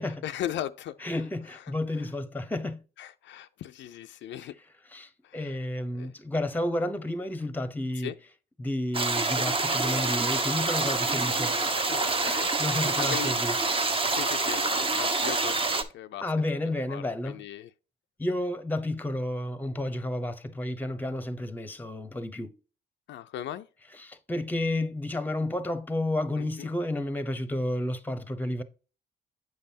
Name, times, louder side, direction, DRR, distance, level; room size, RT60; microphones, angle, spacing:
voice 1, 0.0-1.1 1.5-1.6 2.0-2.1 3.0-4.5 5.2-5.6 5.9-6.1 8.0-8.1 11.9-12.5 13.0-13.3 14.1-16.3 16.6-17.7 23.1-23.7 26.4-26.7, left 11 dB, 70° left, 0.4 m, -38 dB
voice 2, 1.0-2.8 4.9-8.1 8.6-11.5 12.6-13.5 16.2-17.4 18.2-22.5 24.0-28.6, left 1 dB, 10° left, 0.8 m, -31 dB
sound 1, 8.9-15.8, right 3 dB, 25° right, 0.8 m, -27 dB
7.8 x 5.4 x 2.7 m
cardioid pair, 90°, 20 cm